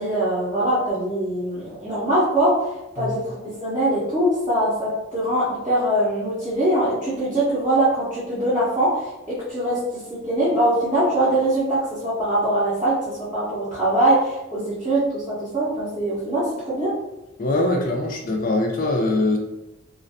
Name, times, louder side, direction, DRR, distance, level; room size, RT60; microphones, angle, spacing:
voice 1, 0.0-2.6 2.9-16.9, right 1 dB, 15° right, -11 dB, 0.6 m, -22 dB
voice 2, 17.4-19.4, left 2 dB, 40° left, 1 dB, 0.4 m, -22 dB
2.4 x 2.2 x 2.5 m, 0.97 s
head